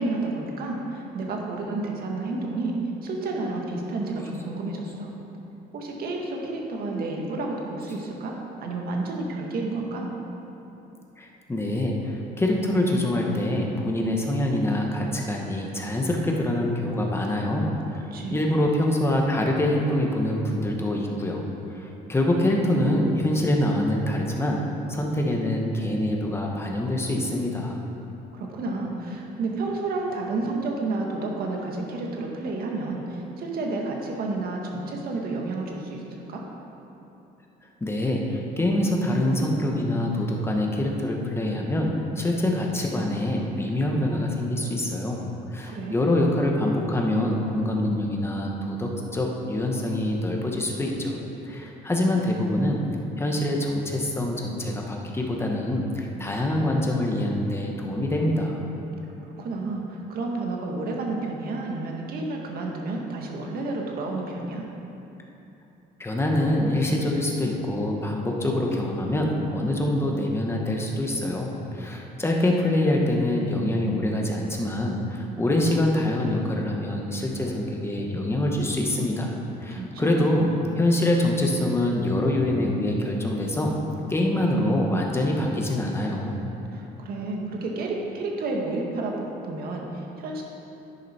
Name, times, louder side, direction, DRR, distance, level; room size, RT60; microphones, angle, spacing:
voice 1, 0.0-2.7 3.0-5.1 5.7-8.3 8.6-10.1 18.1-18.4 28.3-36.0 36.3-36.4 45.7-45.9 59.3-64.6 79.7-80.3 86.7-90.4, right 2 dB, 65° right, 0 dB, 1.9 m, -30 dB
voice 2, 11.2-21.4 21.7-24.6 24.9-27.8 37.6-45.2 45.5-51.2 51.4-52.8 53.2-58.6 66.0-79.3 79.6-83.7 84.1-86.3, left 1 dB, 15° left, 0 dB, 1.6 m, -25 dB
10.5 x 10.0 x 4.6 m, 3.0 s
cardioid pair, 110°, 17 cm